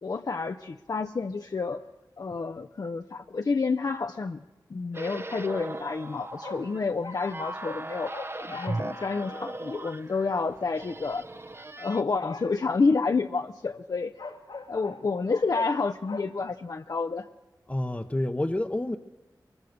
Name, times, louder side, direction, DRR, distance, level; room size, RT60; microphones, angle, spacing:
voice 1, 0.0-1.8 2.2-4.4 4.7-8.1 8.5-11.2 11.8-14.1 14.7-17.3, left 4 dB, 55° left, 6 dB, 0.6 m, -29 dB
sound 1, 4.9-12.0, right 2 dB, 35° right, 0.8 m, -38 dB
sound 2, 6.4-7.8 8.1-9.6 12.0-12.6 14.2-15.0 15.3-15.7 16.1-16.2, left 4 dB, 85° left, 2.0 m, -40 dB
voice 2, 17.7-19.0, left 1 dB, 20° left, 3 dB, 0.8 m, -28 dB
22.5 x 22.0 x 6.6 m, 1.1 s
wide cardioid pair, 75°, 8 cm